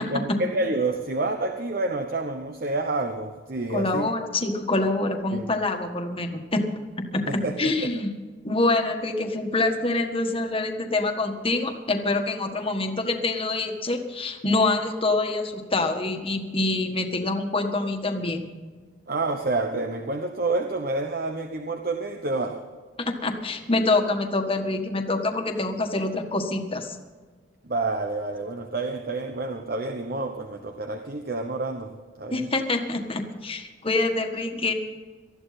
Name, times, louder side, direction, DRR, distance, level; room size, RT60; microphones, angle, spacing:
voice 1, 0.0-4.1 5.3-5.5 7.3-7.9 19.1-22.6 27.6-32.5, right 2 dB, 50° right, 5 dB, 1.1 m, -28 dB
voice 2, 3.7-6.6 7.1-8.1 8.4-18.5 23.0-27.0 32.3-34.7, left 2 dB, 30° left, 4 dB, 1.6 m, -26 dB
19.5 x 13.5 x 4.2 m, 1.5 s
head